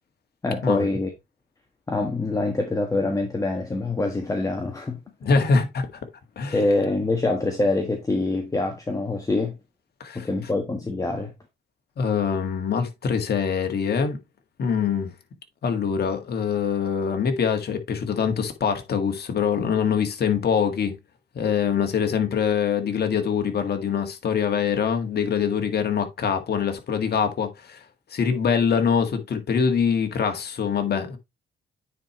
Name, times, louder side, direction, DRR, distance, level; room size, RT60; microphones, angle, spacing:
voice 1, 0.4-1.1 1.9-5.0 6.5-9.5 10.1-11.3, left 2 dB, 15° left, 1.4 m, -25 dB
voice 2, 5.2-5.9 6.3-6.6 10.0-10.3 12.0-14.2 14.6-15.1 15.6-20.9 21.3-27.8 28.1-31.2, left 6 dB, 55° left, 1.8 m, -24 dB
9.4 x 4.4 x 3.0 m
cardioid pair, 90°, 20 cm